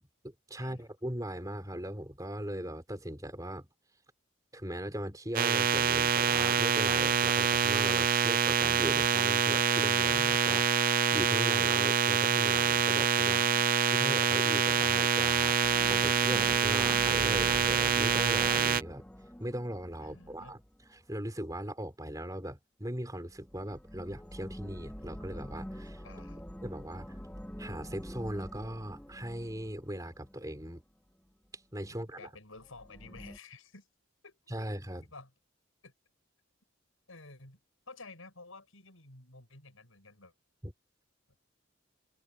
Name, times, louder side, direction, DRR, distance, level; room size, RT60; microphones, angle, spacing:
voice 1, 0.0-3.7 4.5-13.5 13.9-15.6 15.9-19.1 19.4-20.6 20.9-26.0 26.6-27.2 27.6-30.8 31.7-32.3 34.5-35.1 40.6-40.7, equal, 15° right, 4.4 m, -39 dB
sound 1, 5.3-18.8, right 7 dB, 45° right, 0.5 m, -26 dB
sound 2, 15.6-21.0 23.3-30.7 32.6-33.4, equal, 5° left, 2.0 m, -45 dB
voice 2, 20.0-20.6 26.0-26.4 31.9-33.9 34.2-34.4 35.0-35.3 35.8-35.9 37.1-37.6 37.9-40.3, left 3 dB, 85° left, 7.0 m, -52 dB
head